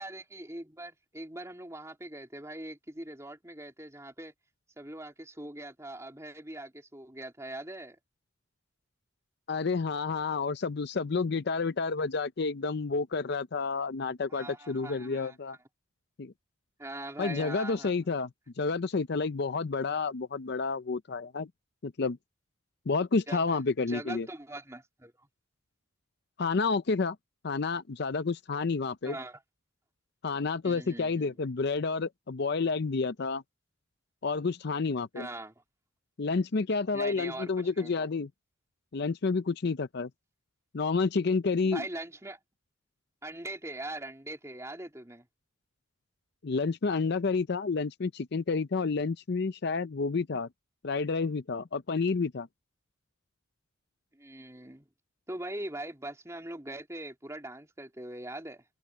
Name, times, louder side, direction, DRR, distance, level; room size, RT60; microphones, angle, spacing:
voice 1, 0.0-4.3 4.8-8.0 14.3-15.6 16.8-17.9 23.3-25.3 29.0-29.4 30.6-31.4 35.1-35.6 36.9-38.1 41.6-42.4 43.2-45.3 54.1-54.9 55.3-58.6, right 1 dB, 15° right, 3.0 m, -42 dB
voice 2, 9.5-15.6 16.2-16.3 17.2-18.3 18.6-21.5 21.8-22.2 22.9-24.3 26.4-27.2 27.4-29.2 30.2-33.4 34.2-35.3 36.2-38.3 38.9-40.1 40.7-41.8 46.4-50.5 50.8-52.5, left 4 dB, 55° left, 0.5 m, -30 dB
head